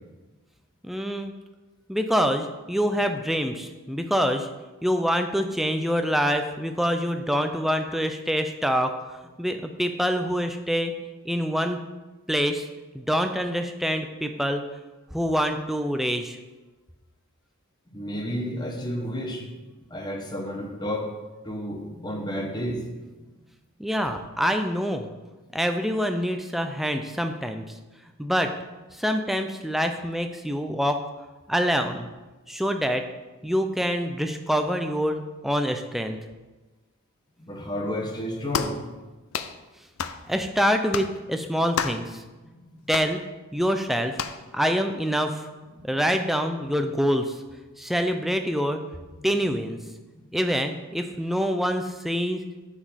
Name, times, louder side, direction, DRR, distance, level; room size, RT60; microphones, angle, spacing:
voice 1, 0.8-1.3 1.9-4.5 4.8-8.9 9.4-10.9 11.2-11.8 12.3-12.7 12.9-14.6 15.1-16.4 23.8-25.1 25.5-27.7 28.2-28.5 28.9-31.0 31.5-32.1 32.5-33.0 33.4-36.2 40.3-42.2 42.9-43.2 43.5-44.2 44.5-45.5 45.8-47.4 47.8-48.8 49.2-49.8 50.3-52.4, equal, ahead, 5 dB, 0.4 m, -25 dB
voice 2, 17.9-19.5 19.9-21.1 21.4-22.9 37.4-38.8 42.5-42.6 45.7-45.9 49.2-49.3, equal, 20° left, 1 dB, 0.9 m, -31 dB
sound 1, 38.5-38.8 39.3-39.6 40.0-40.2 40.9-41.1 41.8-42.1 42.9-43.1 44.2-44.4, left 7 dB, 70° left, 0.4 m, -29 dB
8.8 x 5.0 x 4.2 m, 1.2 s
head